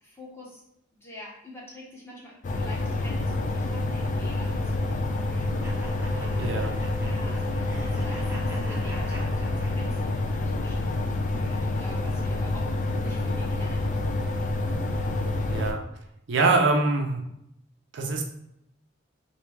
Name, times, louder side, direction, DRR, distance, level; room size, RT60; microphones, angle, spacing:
voice 1, 0.0-0.6 1.0-6.6 6.9-12.7 13.0-13.9, left 1 dB, 15° left, -5 dB, 0.9 m, -46 dB
sound 1, 2.4-15.7, left 2 dB, 40° left, 0.4 m, -28 dB
sound 2, 5.6-10.2, right 1 dB, 10° right, 0.6 m, -45 dB
voice 2, 6.4-6.7 15.5-15.8 16.3-17.3 17.9-18.2, right 3 dB, 65° right, 2 dB, 0.5 m, -24 dB
3.3 x 2.6 x 3.2 m, 0.80 s
head